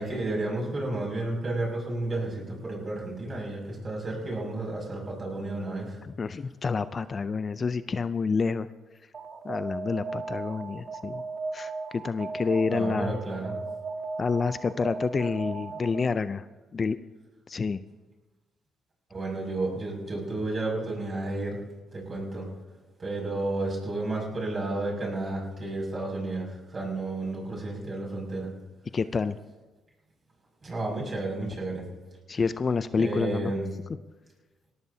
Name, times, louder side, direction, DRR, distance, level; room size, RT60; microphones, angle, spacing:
voice 1, 0.0-6.0 12.7-13.6 19.1-21.6 21.9-22.4 23.0-28.5 30.6-31.8 33.0-33.7, right 2 dB, 35° right, -1 dB, 6.3 m, -32 dB
voice 2, 6.0-8.7 9.4-11.2 11.5-13.2 14.2-16.4 16.7-17.0 17.5-17.8 28.9-29.4 32.3-33.5, left 4 dB, 40° left, 13 dB, 0.4 m, -28 dB
Alarm, 9.1-16.2, right 4 dB, 50° right, 1.6 m, -36 dB
21.5 x 17.5 x 2.8 m, 1.2 s
cardioid pair, 90°, 0 cm